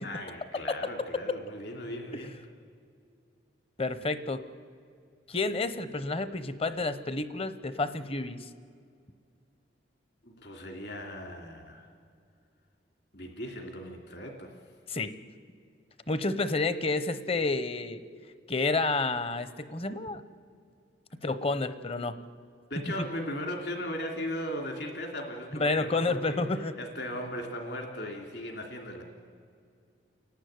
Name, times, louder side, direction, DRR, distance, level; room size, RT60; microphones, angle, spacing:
voice 1, 0.0-2.3 10.2-11.9 13.1-14.5 22.7-26.4 26.8-29.0, left 1 dB, 60° left, 2 dB, 2.9 m, -37 dB
voice 2, 3.8-4.4 5.3-8.5 14.9-15.1 16.1-18.0 18.5-20.2 21.2-22.1 25.6-26.7, left 3 dB, 30° left, 13 dB, 0.8 m, -30 dB
30.0 x 11.5 x 9.5 m, 2.3 s
head